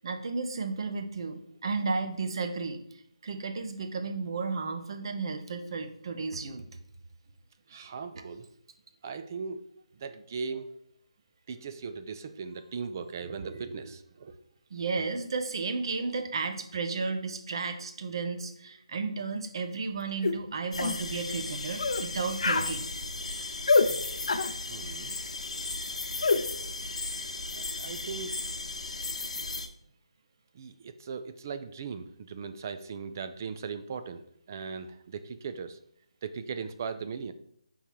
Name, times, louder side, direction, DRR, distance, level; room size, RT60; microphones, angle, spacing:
voice 1, 0.0-2.8 3.2-6.6 14.7-22.9, right 4 dB, 45° right, 7 dB, 0.7 m, -33 dB
voice 2, 7.7-8.5 9.0-9.6 10.0-10.7 11.5-14.3 24.7-25.2 27.5-28.3 30.6-34.2 34.5-35.8 36.2-37.3, right 5 dB, 30° right, 10 dB, 0.3 m, -38 dB
sound 1, 20.2-20.4 20.8-21.0 21.8-22.0 22.4-22.7 23.7-23.9 24.3-24.5 26.2-26.4, left 4 dB, 65° left, 0.5 m, -25 dB
sound 2, 20.7-29.7, left 3 dB, 80° left, 1.0 m, -36 dB
5.5 x 3.7 x 4.6 m, 0.70 s
hypercardioid pair, 165°, 4 cm